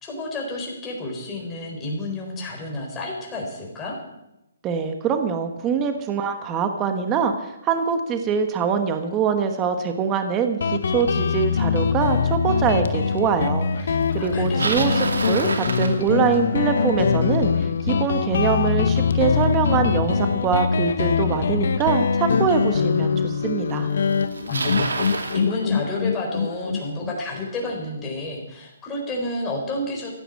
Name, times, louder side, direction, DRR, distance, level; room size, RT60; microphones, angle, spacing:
voice 1, 0.0-4.0 14.1-15.1 24.4-30.1, left 1 dB, 15° left, -1 dB, 4.4 m, -30 dB
voice 2, 4.6-23.9, right 6 dB, 20° right, 7 dB, 1.2 m, -24 dB
Guitar, 10.6-27.8, left 6 dB, 65° left, 1.0 m, -23 dB
Bicycle, 14.2-16.6 21.6-21.7 22.6-22.7 23.7-23.8 24.0-25.4, right 3 dB, 90° right, 2.4 m, -28 dB
15.0 x 9.9 x 8.4 m, 0.91 s
hypercardioid pair, 155°, 0 cm